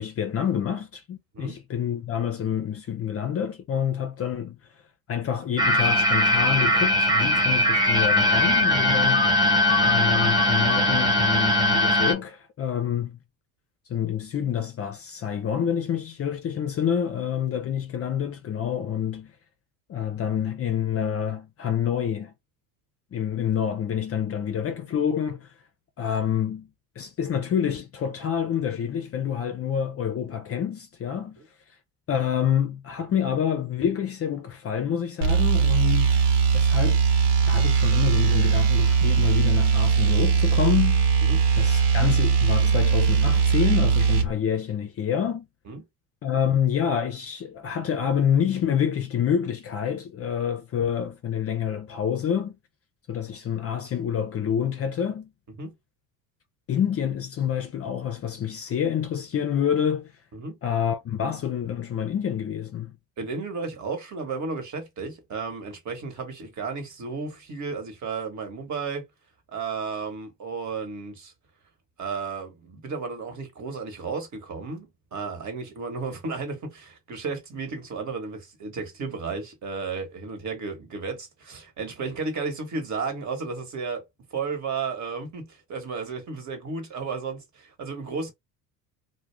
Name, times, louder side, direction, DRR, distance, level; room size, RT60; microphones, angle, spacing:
voice 1, 0.0-4.6 5.1-9.3 9.8-13.2 13.9-19.3 19.9-22.3 23.1-25.5 26.0-26.7 27.0-31.4 32.1-36.2 36.5-37.0 37.5-41.1 41.6-45.5 46.2-52.6 53.1-55.3 56.7-60.1 60.6-62.9, left 8 dB, 35° left, 0.5 m, -27 dB
sound 1, 5.6-12.1, left 1 dB, 10° right, 1.0 m, -20 dB
sound 2, 35.2-44.3, right 6 dB, 85° right, 1.0 m, -20 dB
voice 2, 63.2-69.0 69.5-71.3 72.0-84.0 84.3-88.3, right 4 dB, 40° right, 1.3 m, -33 dB
2.3 x 2.2 x 3.2 m
supercardioid pair, 85°, 44 cm